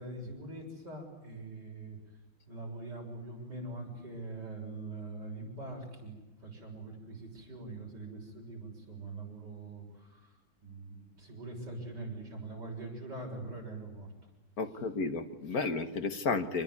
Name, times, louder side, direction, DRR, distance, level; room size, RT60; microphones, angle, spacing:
voice 1, 0.0-2.0 2.5-10.3 10.6-14.1 14.7-14.8, right 2 dB, 55° right, 0 dB, 7.3 m, -43 dB
voice 2, 14.6-16.6, left 4 dB, 50° left, 8 dB, 1.8 m, -32 dB
26.5 x 21.0 x 9.8 m, 1.1 s
omnidirectional pair, 2.2 m